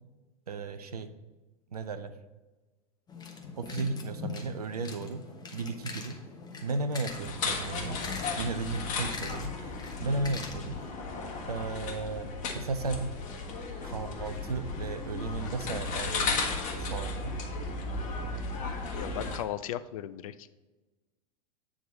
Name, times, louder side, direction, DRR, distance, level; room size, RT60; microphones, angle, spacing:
voice 1, 0.5-1.1 1.7-2.1 3.6-5.2 5.5-6.2 6.6-8.0 8.4-10.8 11.5-13.5 13.8-16.4 16.8-17.3, right 3 dB, 80° right, 10 dB, 0.6 m, -35 dB
sound 1, 3.1-10.9, left 4 dB, 20° left, 1.1 m, -43 dB
sound 2, 7.1-19.4, left 3 dB, 40° left, 1.3 m, -35 dB
voice 2, 18.9-20.5, left 11 dB, 65° left, 13 dB, 0.5 m, -36 dB
9.2 x 3.7 x 4.1 m, 1.2 s
figure-of-eight pair, 90°, 19 cm